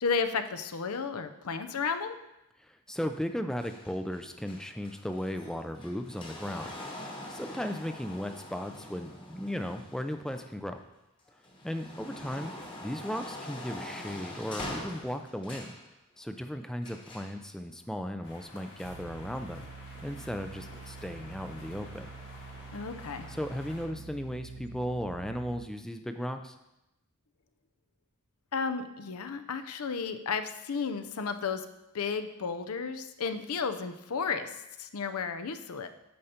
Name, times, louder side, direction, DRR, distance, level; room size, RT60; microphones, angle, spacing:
voice 1, 0.0-2.1 22.7-23.3 28.5-31.7 31.9-35.9, left 5 dB, 80° left, 10 dB, 0.6 m, -33 dB
voice 2, 2.6-6.7 7.3-10.8 11.6-12.5 12.8-15.7 16.2-19.7 20.0-22.1 23.3-26.6, equal, 5° left, 7 dB, 0.3 m, -36 dB
sound 1, 3.6-10.8 11.3-15.8 16.8-17.4 18.3-18.4, left 1 dB, 25° left, 1.2 m, -44 dB
sound 2, 18.2-23.9, left 2 dB, 55° left, 2.0 m, -50 dB
sound 3, 18.8-25.7, right 4 dB, 75° right, 0.5 m, -47 dB
8.6 x 5.5 x 4.3 m, 0.91 s
head